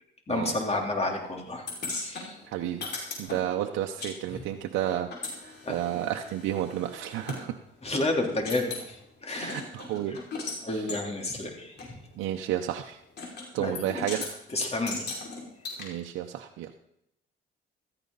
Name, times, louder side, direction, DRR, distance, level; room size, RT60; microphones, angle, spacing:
voice 1, 0.3-1.6 2.0-2.4 4.3-4.4 5.7-5.8 7.8-9.0 9.2-9.6 10.6-12.0 13.6-13.9 14.5-15.1, left 2 dB, 30° left, 2 dB, 3.4 m, -30 dB
sound 1, 1.7-4.1 4.4-7.4 7.8-7.9 8.2-8.9 9.3-10.6 10.9-11.0 11.8-11.9 13.2-13.5 13.7-14.3 14.9-15.8, left 3 dB, 55° left, 5.4 m, -37 dB
voice 2, 2.5-2.9 3.2-5.1 5.4-7.6 9.3-10.2 10.7-10.9 12.2-13.0 13.5-14.3 15.8-16.7, right 11 dB, 90° right, 3 dB, 0.8 m, -31 dB
16.0 x 14.0 x 4.0 m, 0.78 s
cardioid pair, 90°, 20 cm